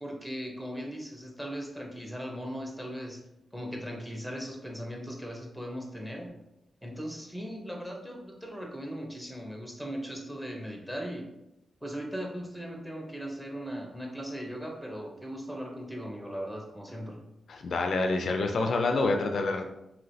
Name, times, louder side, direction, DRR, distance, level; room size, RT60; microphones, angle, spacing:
voice 1, 0.0-3.2 3.5-6.3 6.8-11.3 11.8-17.2, equal, 5° right, 1 dB, 0.8 m, -38 dB
voice 2, 17.5-19.6, left 3 dB, 65° left, 4 dB, 0.3 m, -27 dB
3.0 x 2.8 x 2.7 m, 0.88 s
cardioid pair, 70°, 0 cm